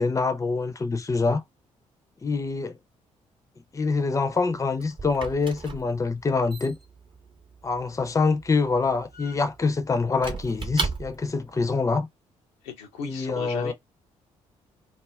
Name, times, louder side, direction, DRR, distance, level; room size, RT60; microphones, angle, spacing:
voice 1, 0.0-1.4 2.2-2.8 3.7-6.8 7.6-12.1 13.0-13.7, left 4 dB, 20° left, 0.5 m, -25 dB
Squeak / Wood, 4.3-11.4, right 4 dB, 30° right, 0.7 m, -37 dB
voice 2, 12.6-13.7, left 6 dB, 70° left, 0.6 m, -36 dB
2.4 x 2.1 x 3.4 m
figure-of-eight pair, 40°, 17 cm